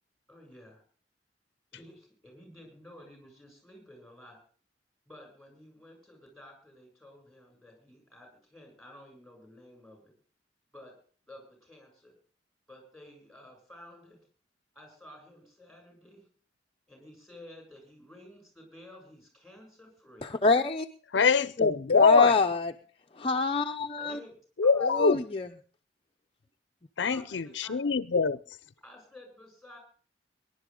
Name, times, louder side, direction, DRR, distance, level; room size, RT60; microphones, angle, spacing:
voice 1, 0.3-0.8 1.7-4.4 5.1-10.1 10.7-10.9 11.3-12.1 12.7-14.2 14.7-16.2 16.9-20.3 24.0-24.4 24.6-25.2 27.0-27.8 28.8-29.8, left 1 dB, ahead, 7.7 m, -52 dB
voice 2, 20.2-20.9 21.6-22.7 23.2-24.2 24.8-25.5, left 3 dB, 30° left, 0.7 m, -27 dB
voice 3, 21.1-22.3 24.6-25.2 27.0-28.4, left 5 dB, 75° left, 0.6 m, -23 dB
23.5 x 11.0 x 3.8 m
head